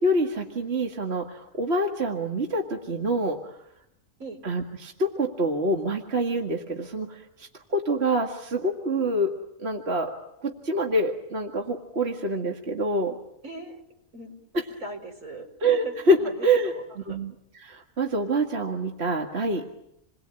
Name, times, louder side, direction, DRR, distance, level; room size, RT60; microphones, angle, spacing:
voice 1, 0.0-3.6 4.4-9.3 9.6-10.1 10.4-13.2 14.5-14.6 15.6-16.2 16.4-17.3 17.6-19.6, right 1 dB, 50° right, 3 dB, 2.2 m, -26 dB
voice 2, 13.4-13.8 14.1-14.3 14.8-17.2, right 2 dB, 75° right, 4 dB, 4.8 m, -40 dB
29.0 x 21.5 x 8.9 m, 0.82 s
omnidirectional pair, 1.4 m